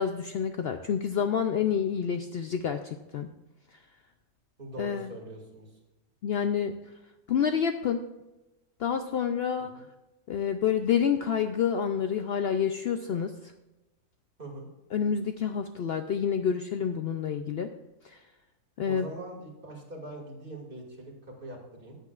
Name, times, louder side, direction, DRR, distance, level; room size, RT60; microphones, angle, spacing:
voice 1, 0.0-3.3 4.8-5.1 6.2-6.7 7.3-8.0 8.8-9.7 10.3-13.3 14.9-17.7 18.0-18.2 18.8-19.1, left 7 dB, 70° left, 7 dB, 0.6 m, -28 dB
voice 2, 4.6-5.7 9.8-9.9 14.4-14.7 18.9-22.0, right 1 dB, 35° right, -1 dB, 2.4 m, -42 dB
14.0 x 8.5 x 2.4 m, 1.0 s
omnidirectional pair, 1.5 m